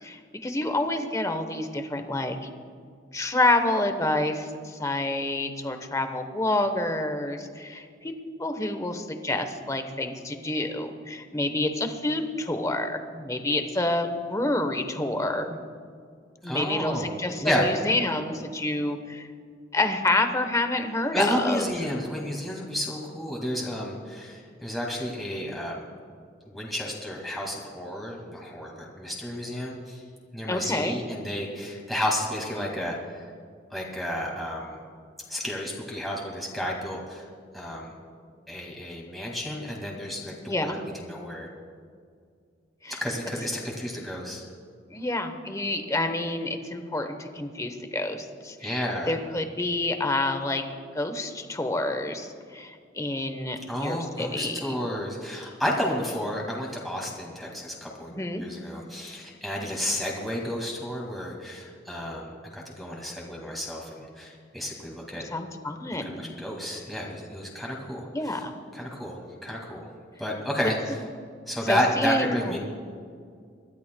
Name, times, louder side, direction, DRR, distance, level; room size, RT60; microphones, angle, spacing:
voice 1, 0.0-2.4 3.1-8.1 8.4-15.6 16.4-19.3 19.7-21.6 30.5-31.0 40.4-40.8 42.8-43.0 44.9-50.6 50.9-54.7 58.2-58.4 65.3-66.3 68.1-68.5 71.7-72.6, left 2 dB, 20° left, 7 dB, 0.9 m, -28 dB
voice 2, 16.4-17.1 17.4-17.7 21.1-25.9 26.5-30.0 30.3-33.3 33.7-34.8 35.3-37.3 37.5-37.9 38.5-41.5 42.9-44.5 48.6-49.2 53.7-65.3 66.0-68.4 68.7-69.9 70.2-70.8 71.5-72.6, equal, ahead, -3 dB, 2.0 m, -31 dB
25.0 x 12.5 x 2.2 m, 2.2 s
head